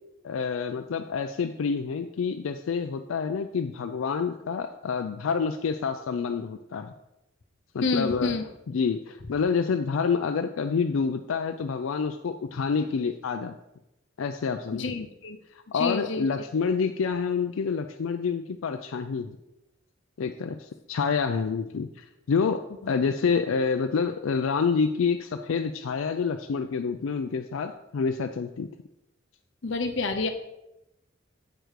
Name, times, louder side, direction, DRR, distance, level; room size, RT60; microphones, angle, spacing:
voice 1, 0.2-6.9 7.7-8.3 8.7-13.5 14.2-14.9 15.5-19.4 20.2-22.6 22.9-28.7, left 5 dB, 85° left, 6 dB, 0.4 m, -28 dB
voice 2, 7.8-8.4 14.7-15.4 15.7-16.3 22.8-22.9 29.6-30.3, left 3 dB, 65° left, 6 dB, 0.7 m, -28 dB
7.7 x 5.1 x 4.6 m, 0.90 s
head